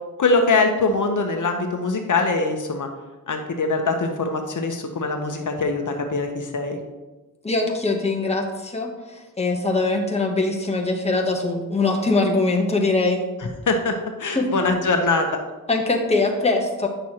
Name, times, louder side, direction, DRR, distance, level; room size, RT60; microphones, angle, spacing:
voice 1, 0.2-2.9 3.3-6.8 13.7-15.3, left 3 dB, 65° left, 4 dB, 0.9 m, -22 dB
voice 2, 7.4-13.2 14.3-14.5 15.7-16.9, left 3 dB, 20° left, 1 dB, 0.9 m, -22 dB
9.0 x 6.2 x 2.9 m, 1.1 s
wide cardioid pair, 100°, 33 cm